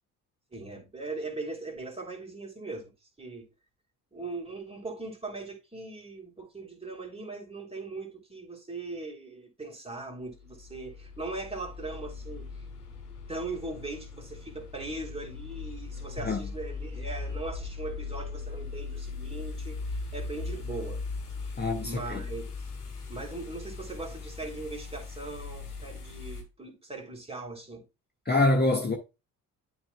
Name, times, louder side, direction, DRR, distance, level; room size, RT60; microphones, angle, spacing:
voice 1, 0.5-2.9 3.2-3.5 4.1-12.5 13.3-21.0 21.4-22.7 23.1-27.8, right 3 dB, 15° right, 3.2 m, -39 dB
sound 1, 10.2-26.4, left 4 dB, 85° left, 1.4 m, -39 dB
voice 2, 21.6-22.2 28.2-29.0, left 2 dB, 20° left, 1.8 m, -25 dB
12.0 x 4.2 x 2.3 m
figure-of-eight pair, 45°, 45 cm